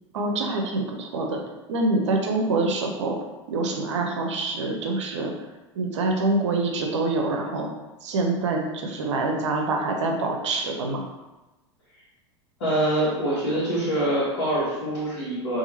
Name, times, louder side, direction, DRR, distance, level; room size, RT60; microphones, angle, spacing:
voice 1, 0.1-1.4 1.7-3.2 3.5-5.3 5.8-7.7 8.0-11.1, right 2 dB, 75° right, 2 dB, 0.6 m, -25 dB
voice 2, 12.6-15.6, right 1 dB, 70° left, -9 dB, 1.1 m, -25 dB
2.8 x 2.6 x 2.7 m, 1.1 s
hypercardioid pair, 85°, 16 cm